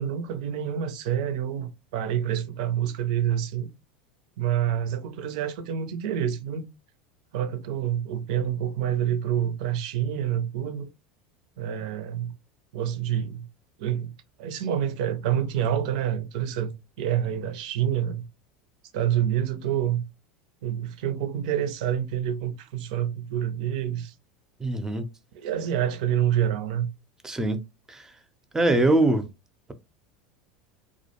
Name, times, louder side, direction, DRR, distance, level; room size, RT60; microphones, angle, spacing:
voice 1, 0.0-3.7 4.4-6.6 7.3-10.9 11.6-12.3 12.7-13.5 13.8-14.1 14.4-18.3 18.9-20.0 20.6-24.1 25.3-26.9, right 10 dB, 70° right, 0.4 m, -27 dB
voice 2, 24.6-25.0 27.2-27.6 27.9-28.1 28.5-29.3, right 2 dB, 10° right, 0.5 m, -22 dB
2.3 x 2.1 x 2.8 m
hypercardioid pair, 90°, 4 cm